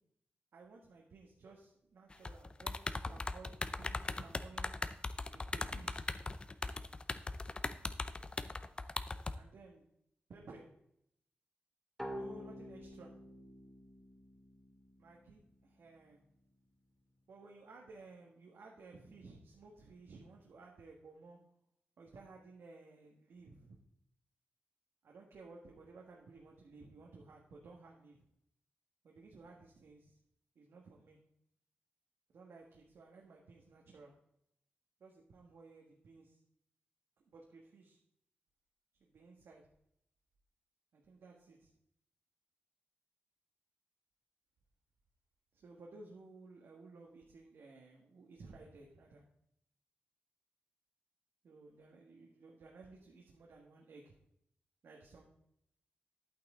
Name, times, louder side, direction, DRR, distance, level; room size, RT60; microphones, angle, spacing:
voice 1, 0.5-2.8 3.0-4.7 5.3-6.1 9.3-9.8 10.3-10.7 12.1-13.1 15.0-16.2 17.3-21.4 22.0-23.8 25.0-28.2 29.0-30.2 30.5-31.2 32.3-34.1 35.0-36.4 37.3-38.0 39.0-39.6 40.9-41.7 45.5-49.2 51.4-54.1 54.8-55.2, right 3 dB, 80° right, -1 dB, 1.7 m, -56 dB
sound 1, 2.1-9.3, left 3 dB, 25° left, 0.5 m, -39 dB
sound 2, 12.0-15.5, equal, 5° left, 2.1 m, -48 dB
11.5 x 8.8 x 3.7 m, 0.76 s
wide cardioid pair, 150°, 4 cm